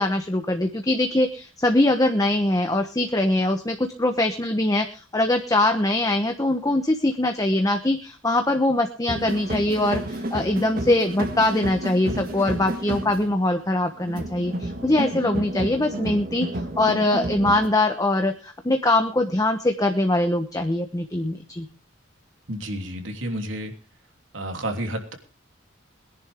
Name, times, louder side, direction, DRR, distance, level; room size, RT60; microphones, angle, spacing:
voice 1, 0.0-21.7, left 1 dB, 20° left, 5 dB, 1.1 m, -22 dB
sound 1, 9.1-17.7, right 1 dB, 50° right, 1.8 m, -31 dB
voice 2, 22.5-23.7 24.3-25.1, right 1 dB, 80° right, 4 dB, 3.1 m, -30 dB
22.0 x 10.5 x 3.6 m, 0.35 s
head